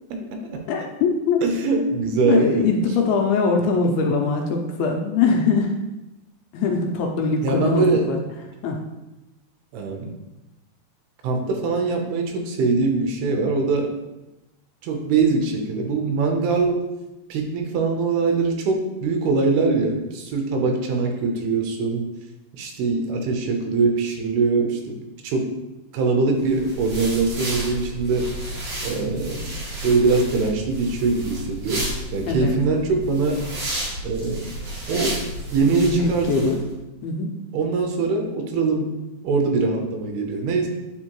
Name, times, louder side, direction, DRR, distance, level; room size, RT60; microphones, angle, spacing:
voice 1, 0.1-0.6 1.4-2.7 7.4-8.1 9.7-10.1 11.2-13.9 14.8-16.8 17.3-22.1 22.6-25.5 25.9-28.3 28.8-29.5 29.8-33.4 34.0-34.5 34.9-35.2 35.5-36.6 37.5-38.9 39.2-40.7, right 4 dB, 80° right, 3 dB, 2.7 m, -22 dB
voice 2, 0.7-1.4 1.7-1.8 2.2-5.7 6.5-8.2 8.6-8.8 32.3-32.5 35.7-36.6 37.0-37.3, left 4 dB, 80° left, 2 dB, 2.4 m, -22 dB
sound 1, 26.4-36.6, right 1 dB, 45° right, 2.5 m, -32 dB
9.5 x 4.5 x 3.0 m, 1.0 s
omnidirectional pair, 4.7 m